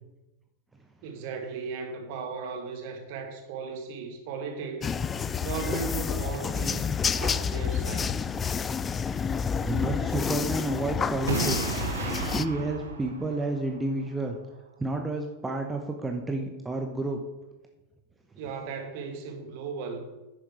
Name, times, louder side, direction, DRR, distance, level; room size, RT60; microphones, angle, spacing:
voice 1, 1.0-8.2 18.4-20.1, right 5 dB, 50° right, 4 dB, 1.7 m, -36 dB
sound 1, 4.8-12.5, left 6 dB, 20° left, 0.3 m, -29 dB
voice 2, 9.6-11.6 12.0-14.4 14.8-17.2, right 2 dB, 10° right, 3 dB, 0.9 m, -30 dB
Boom, 11.3-14.1, right 4 dB, 70° right, 1.1 m, -33 dB
10.0 x 6.3 x 4.8 m, 1.0 s
figure-of-eight pair, 90°, 0 cm